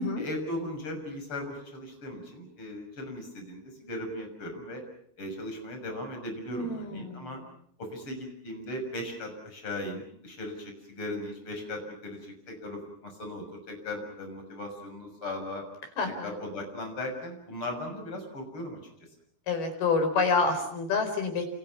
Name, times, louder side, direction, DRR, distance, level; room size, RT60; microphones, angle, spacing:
voice 1, 0.2-4.8 5.2-7.4 7.8-15.6 16.1-18.8, left 1 dB, 35° left, 4 dB, 7.3 m, -38 dB
voice 2, 6.5-7.4 16.0-16.3 19.5-21.6, left 4 dB, 80° left, 6 dB, 6.7 m, -28 dB
29.0 x 29.0 x 5.9 m, 0.65 s
omnidirectional pair, 4.4 m